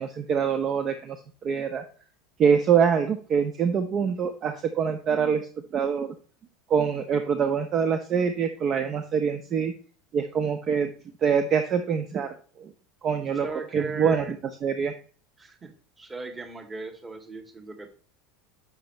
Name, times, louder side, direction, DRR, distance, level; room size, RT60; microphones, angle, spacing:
voice 1, 0.0-1.8 2.4-5.5 5.7-6.1 6.7-9.7 10.1-10.9 11.2-12.3 12.6-12.7 13.0-13.5 13.7-14.2 14.6-14.9, right 7 dB, 35° right, 8 dB, 1.1 m, -24 dB
voice 2, 13.4-14.3 15.4-15.7 16.0-17.9, right 3 dB, 20° right, 5 dB, 2.4 m, -37 dB
11.5 x 7.4 x 3.1 m, 0.40 s
figure-of-eight pair, 75°, 0 cm